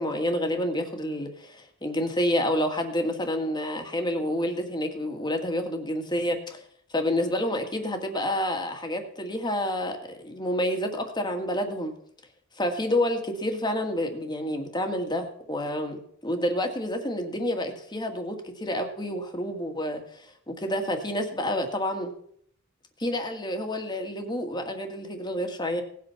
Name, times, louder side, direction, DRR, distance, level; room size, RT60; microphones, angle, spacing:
voice 1, 0.0-6.6 6.9-11.9 12.5-22.1 23.0-25.8, left 1 dB, 20° left, 4 dB, 1.8 m, -29 dB
17.5 x 8.4 x 5.8 m, 0.66 s
head